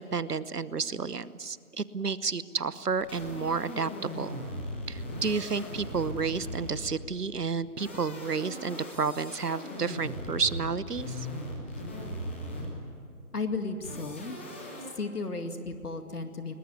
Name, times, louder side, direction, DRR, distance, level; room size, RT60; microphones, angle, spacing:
voice 1, 0.0-3.9 4.2-4.4 4.9-11.3, right 5 dB, 90° right, 17 dB, 1.1 m, -31 dB
sound 1, 3.0-7.1 7.6-12.9 13.8-14.9, left 1 dB, 10° left, 1.1 m, -39 dB
voice 2, 13.3-14.4 15.0-16.5, left 3 dB, 75° left, 7 dB, 2.3 m, -34 dB
21.5 x 20.5 x 9.6 m, 2.4 s
figure-of-eight pair, 160°, 45 cm